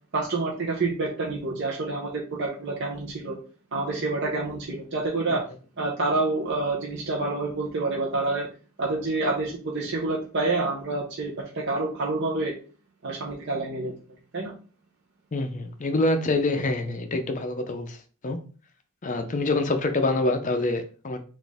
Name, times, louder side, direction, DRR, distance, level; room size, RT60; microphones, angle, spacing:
voice 1, 0.1-3.4 3.7-5.4 5.8-8.5 8.8-12.6 13.0-13.9 14.3-14.5, right 3 dB, 55° right, -3 dB, 0.7 m, -28 dB
voice 2, 15.3-18.0 18.2-18.4 19.0-21.3, left 2 dB, 35° left, 6 dB, 0.5 m, -26 dB
4.1 x 2.5 x 3.4 m, 0.39 s
head